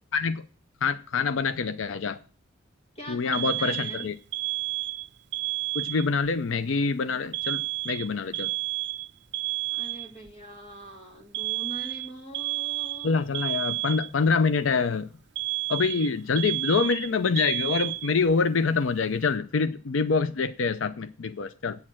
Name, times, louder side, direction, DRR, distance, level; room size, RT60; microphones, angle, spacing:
voice 1, 0.1-0.4 0.8-2.2 3.1-4.1 5.7-8.5 13.0-15.1 15.7-21.8, left 4 dB, 90° left, 0.5 m, -26 dB
voice 2, 2.9-4.1 9.7-13.7 20.3-20.4, equal, 35° left, 2.4 m, -43 dB
Alarm, 3.3-6.3 7.3-10.3 11.3-14.3 15.4-18.3, right 19 dB, 60° right, 0.4 m, -31 dB
8.7 x 6.5 x 7.5 m
head